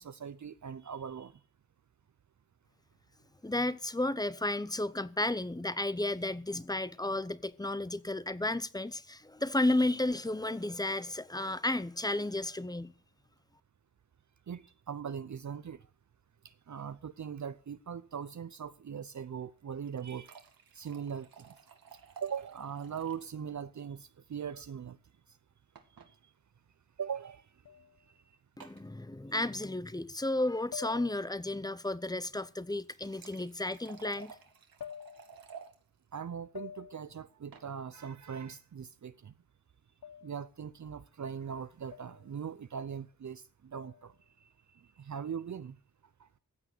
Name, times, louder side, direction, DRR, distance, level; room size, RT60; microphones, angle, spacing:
voice 1, 0.0-1.4 14.5-15.9 16.4-20.4 20.7-21.6 22.2-25.0 26.1-26.3 27.0-27.5 28.1-28.2 36.1-39.3 40.2-45.8 46.2-46.3, right 7 dB, 55° right, 0.7 m, -41 dB
voice 2, 3.4-12.9 28.6-34.3, left 2 dB, 10° left, 0.7 m, -33 dB
sound 1, 19.6-23.3 23.6-23.7 24.0-24.1 25.8-26.1 27.1-27.3 28.6-28.9 32.6-35.8 37.2-37.7, right 6 dB, 85° right, 2.0 m, -53 dB
sound 2, 27.6-28.0 29.2-29.3 30.7-31.5 33.0-33.2 34.8-35.5 36.5-37.2 40.0-40.5 41.9-42.3 43.7-44.1, left 8 dB, 75° left, 1.3 m, -47 dB
15.0 x 8.6 x 6.7 m
wide cardioid pair, 115°, 34 cm